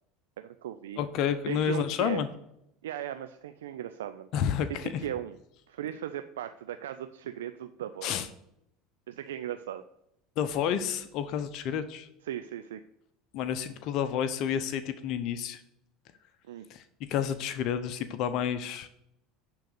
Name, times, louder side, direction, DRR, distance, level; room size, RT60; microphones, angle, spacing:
voice 1, 0.4-1.0 1.5-2.2 2.8-4.3 4.7-5.4 5.7-8.1 9.1-9.8 12.2-12.8 16.5-16.7, right 11 dB, 85° right, 9 dB, 0.4 m, -37 dB
voice 2, 1.0-2.3 4.3-4.9 8.0-8.3 10.4-12.1 13.3-15.6 16.7-18.9, left 8 dB, 60° left, 10 dB, 0.8 m, -30 dB
10.5 x 4.0 x 6.6 m, 0.80 s
hypercardioid pair, 85°, 0 cm